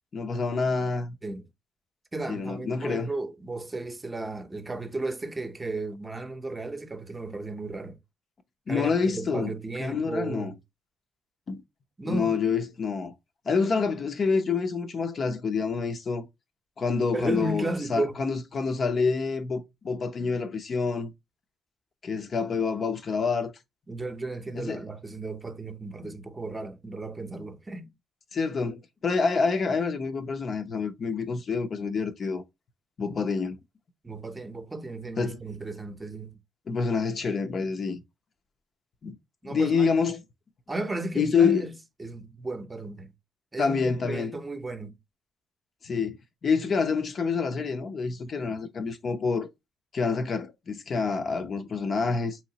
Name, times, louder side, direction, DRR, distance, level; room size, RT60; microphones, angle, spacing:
voice 1, 0.1-1.2 2.3-3.1 8.7-9.5 9.8-10.5 11.5-11.6 12.0-13.1 13.5-16.3 16.8-21.1 22.0-23.5 24.5-24.8 28.3-32.4 33.0-33.6 35.2-35.4 36.7-38.0 39.0-39.2 39.4-40.2 41.2-41.6 43.6-44.3 45.8-46.2 46.4-49.5 49.9-52.4, left 5 dB, 50° left, 0.6 m, -27 dB
voice 2, 2.1-8.0 8.7-10.5 12.0-12.3 17.1-18.2 23.9-27.9 34.0-36.4 39.4-39.9 40.7-41.7 42.0-43.1 43.5-44.9, right 2 dB, 20° right, 0.7 m, -34 dB
4.7 x 3.0 x 2.8 m
cardioid pair, 90°, 0 cm